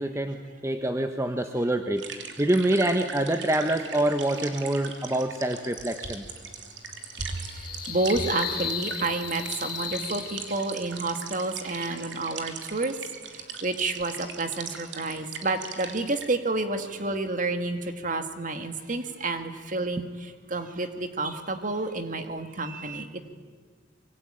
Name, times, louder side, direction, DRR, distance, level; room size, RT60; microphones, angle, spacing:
voice 1, 0.0-6.2, right 1 dB, 15° right, 6 dB, 1.1 m, -26 dB
sound 1, 2.0-16.3, right 6 dB, 65° right, 3.1 m, -40 dB
sound 2, 5.0-11.0, left 7 dB, 50° left, 2.3 m, -37 dB
voice 2, 7.2-7.5 7.9-13.0 13.6-17.8 18.0-23.3, right 2 dB, 40° right, 7 dB, 2.1 m, -30 dB
26.0 x 23.5 x 9.0 m, 1.5 s
head